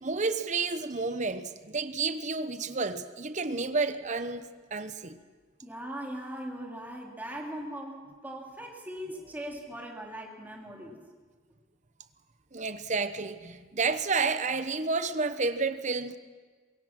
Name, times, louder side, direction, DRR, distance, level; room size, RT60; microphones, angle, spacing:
voice 1, 0.0-5.2 12.5-16.2, right 4 dB, 40° right, 1.0 m, -30 dB
voice 2, 5.6-11.0, right 1 dB, 10° right, 3.3 m, -40 dB
23.5 x 21.5 x 6.1 m
head